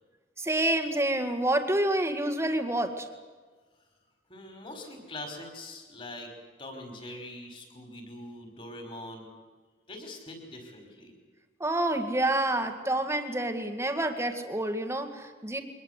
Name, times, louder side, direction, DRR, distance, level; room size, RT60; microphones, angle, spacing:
voice 1, 0.4-3.1 11.6-15.6, right 1 dB, 15° right, 7 dB, 2.0 m, -28 dB
voice 2, 4.3-9.3 9.9-11.1, left 1 dB, 30° left, 5 dB, 5.3 m, -43 dB
23.5 x 20.0 x 8.3 m, 1.4 s
head